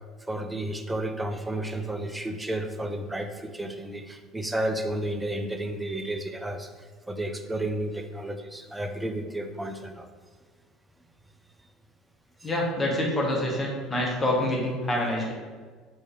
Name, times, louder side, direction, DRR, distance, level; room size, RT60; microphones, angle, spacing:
voice 1, 0.3-6.7 7.1-10.1 12.4-12.5, right 1 dB, 10° right, 7 dB, 0.4 m, -32 dB
voice 2, 12.4-15.3, left 1 dB, 20° left, -2 dB, 1.1 m, -26 dB
4.6 x 3.1 x 3.0 m, 1.5 s
figure-of-eight pair, 60°, 0 cm